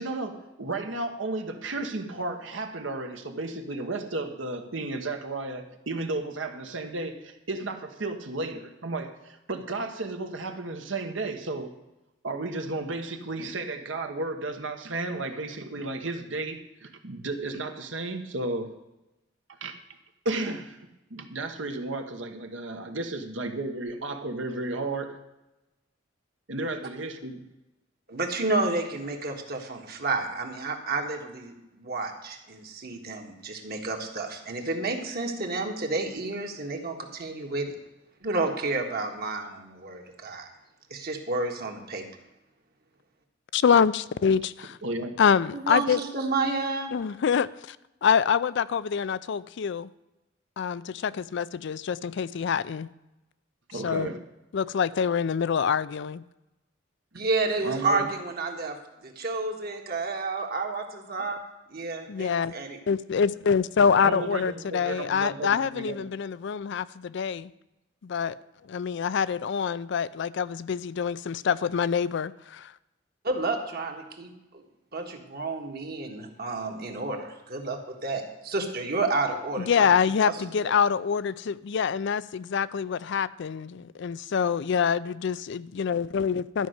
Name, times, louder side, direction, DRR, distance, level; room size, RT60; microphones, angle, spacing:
voice 1, 0.0-11.7 12.2-18.7 19.6-19.7 20.2-25.2 26.5-27.4 44.8-45.1 53.7-54.2 57.6-58.1 64.0-66.1, right 2 dB, 75° right, 6 dB, 1.2 m, -33 dB
voice 2, 28.1-37.8 38.2-40.5 40.9-42.1 45.5-46.9 57.1-58.8 59.0-61.4 61.7-62.8 73.2-74.6 74.9-80.0 80.2-80.4 80.6-80.7, right 3 dB, 55° right, 3 dB, 1.7 m, -30 dB
voice 3, 43.5-44.8 45.2-46.0 46.9-47.8 48.0-49.9 50.6-52.9 53.7-54.1 54.5-56.2 62.1-62.5 62.9-67.5 68.0-68.4 68.7-72.7 79.6-86.7, left 6 dB, 65° left, 17 dB, 0.4 m, -26 dB
12.5 x 5.5 x 7.9 m, 0.97 s
head